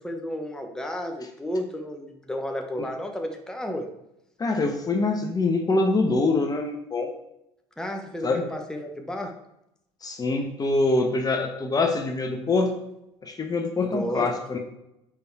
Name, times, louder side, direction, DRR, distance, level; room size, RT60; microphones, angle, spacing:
voice 1, 0.0-3.9 7.8-9.3 13.8-14.3, equal, 5° left, 3 dB, 1.2 m, -32 dB
voice 2, 4.4-7.1 8.2-8.4 10.0-12.7 13.2-14.6, left 3 dB, 30° left, 4 dB, 1.1 m, -24 dB
6.9 x 5.2 x 4.7 m, 0.83 s
hypercardioid pair, 75°, 13 cm